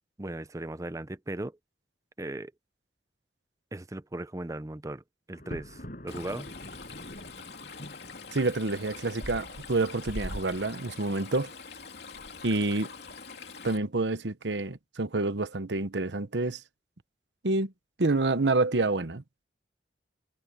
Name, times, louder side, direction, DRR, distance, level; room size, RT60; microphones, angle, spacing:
voice 1, 0.2-1.6 2.2-2.5 3.7-5.0 5.3-6.5, right 1 dB, 20° right, 0.6 m, -37 dB
Thunder, 5.3-9.4, equal, 50° left, 6.2 m, -45 dB
Stream, 6.1-13.8, left 3 dB, 65° left, 2.9 m, -43 dB
voice 2, 8.3-11.5 12.4-12.9 13.6-16.6 17.4-17.7 18.0-19.2, right 2 dB, 80° right, 1.1 m, -28 dB
head